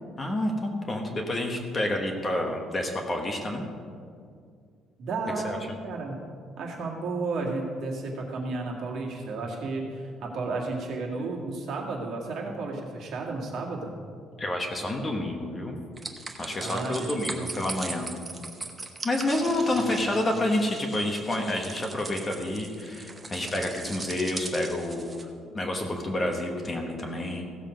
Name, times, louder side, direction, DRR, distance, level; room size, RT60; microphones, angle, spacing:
voice 1, 0.2-3.7 5.4-5.6 14.4-15.7 16.4-18.1 19.0-25.1 25.5-27.4, left 1 dB, 20° left, 2 dB, 1.1 m, -29 dB
voice 2, 5.0-6.2 6.6-14.0 16.6-17.5 20.0-20.1, right 3 dB, 55° right, -1 dB, 2.1 m, -33 dB
sound 1, 16.0-25.2, right 3 dB, 15° right, 0.9 m, -40 dB
15.5 x 7.4 x 5.2 m, 2.2 s
cardioid pair, 155°, 0 cm